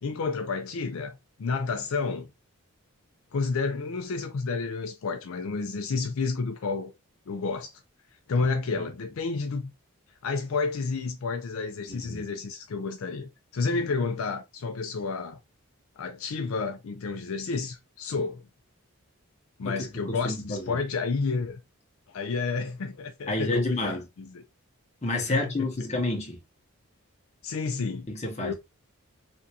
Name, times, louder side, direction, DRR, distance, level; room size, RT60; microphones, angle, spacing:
voice 1, 0.0-2.3 3.3-6.9 7.3-7.7 8.3-9.7 10.2-15.4 16.0-18.4 19.6-21.6 22.1-24.0 24.3-24.4 25.3-25.5 27.4-28.1 28.4-28.5, left 4 dB, 70° left, 0.4 m, -30 dB
voice 2, 11.9-12.2 19.6-20.8 23.3-24.0 25.0-26.4 28.1-28.5, left 2 dB, 30° left, 0.9 m, -30 dB
3.4 x 2.6 x 2.7 m
head